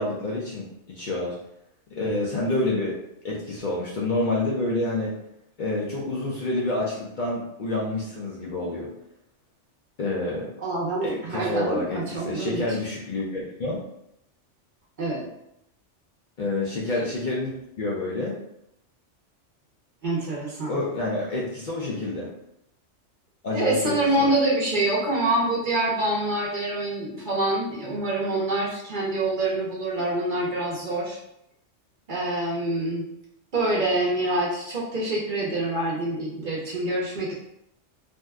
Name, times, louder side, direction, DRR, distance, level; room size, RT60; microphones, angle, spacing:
voice 1, 0.0-1.4 1.9-3.0 3.2-5.1 5.6-8.9 10.0-10.5 11.0-13.8 16.4-18.4 20.7-22.3 23.4-24.3, left 2 dB, 55° left, -5 dB, 0.6 m, -28 dB
voice 2, 10.6-12.6 15.0-15.3 20.0-20.8 23.5-31.2 32.1-33.1 33.5-37.3, right 2 dB, 50° right, -4 dB, 0.7 m, -26 dB
2.7 x 2.1 x 3.4 m, 0.79 s
omnidirectional pair, 1.2 m